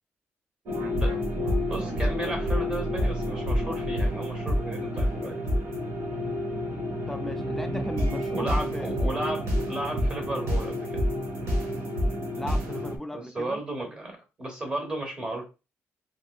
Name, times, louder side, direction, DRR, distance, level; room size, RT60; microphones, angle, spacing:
sound 1, 0.7-13.0, equal, 80° right, 0.9 m, -28 dB
voice 1, 0.8-1.2 1.7-5.4 8.3-11.0 13.1-15.4, right 1 dB, 20° right, 0.9 m, -34 dB
voice 2, 7.1-8.9 12.3-13.6, left 1 dB, 5° left, 0.3 m, -37 dB
3.0 x 2.7 x 2.3 m
wide cardioid pair, 170°, 5 cm